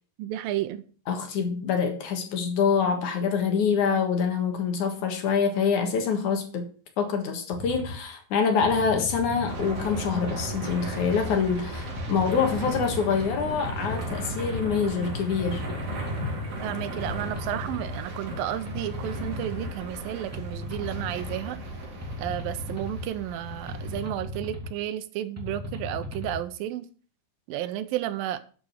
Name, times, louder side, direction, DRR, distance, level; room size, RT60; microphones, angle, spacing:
voice 1, 0.2-0.8 16.6-21.6 22.2-26.9 27.5-28.4, right 12 dB, 75° right, 11 dB, 2.4 m, -32 dB
voice 2, 1.1-6.7 7.0-15.6, left 6 dB, 60° left, 4 dB, 2.8 m, -25 dB
sound 1, 7.5-8.0 8.6-9.6 10.3-11.3 12.0-13.0 13.6-14.7 15.3-16.3 17.0-18.0 18.7-19.7 20.3-21.4 22.0-23.0 23.7-24.7 25.4-26.4, left 1 dB, 5° right, 1.5 m, -36 dB
sound 2, 9.5-24.1, equal, 55° right, 3.8 m, -36 dB
11.5 x 5.2 x 6.4 m, 0.41 s
omnidirectional pair, 4.3 m